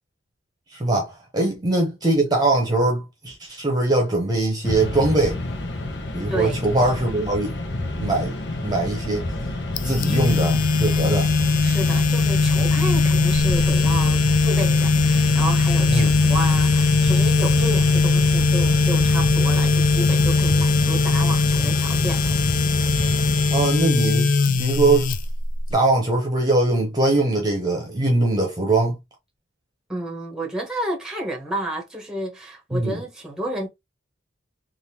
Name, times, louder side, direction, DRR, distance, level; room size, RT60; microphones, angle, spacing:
voice 1, 0.7-5.4 6.1-7.6 8.0-8.4 8.6-9.3 9.8-11.3 15.9-16.1 23.5-25.1 25.7-29.0 32.7-33.0, right 2 dB, 20° right, 0.9 m, -21 dB
Mechanisms, 4.6-24.1, left 1 dB, 65° left, 0.9 m, -28 dB
voice 2, 6.3-6.6 9.8-10.2 11.6-22.4 29.9-33.7, right 1 dB, 5° right, 1.1 m, -31 dB
sound 1, 9.8-25.7, left 3 dB, 45° left, 0.4 m, -20 dB
3.6 x 2.5 x 2.9 m
head